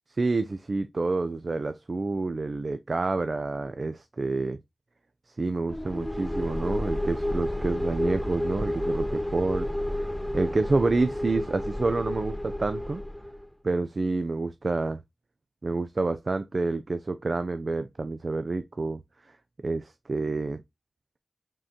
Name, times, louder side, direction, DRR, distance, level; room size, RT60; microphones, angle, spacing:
voice 1, 0.2-4.6 5.4-9.7 9.9-13.0 13.6-15.0 15.6-19.0 19.6-20.6, right 3 dB, 60° right, 0.4 m, -28 dB
sound 1, 5.7-13.5, left 1 dB, 5° left, 0.5 m, -31 dB
5.0 x 3.7 x 2.8 m
wide cardioid pair, 65°, 0 cm